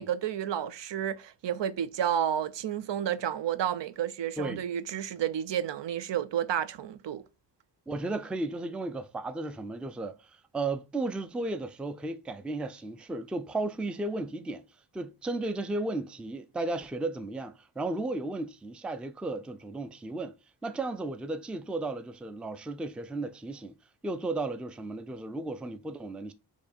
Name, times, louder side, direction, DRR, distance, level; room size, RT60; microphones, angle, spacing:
voice 1, 0.0-7.2, right 9 dB, 85° right, 0.5 m, -31 dB
voice 2, 7.9-14.6 14.9-20.3 20.6-23.8 24.0-26.3, right 2 dB, 5° right, 0.3 m, -34 dB
4.6 x 2.8 x 4.1 m
wide cardioid pair, 90°, 42 cm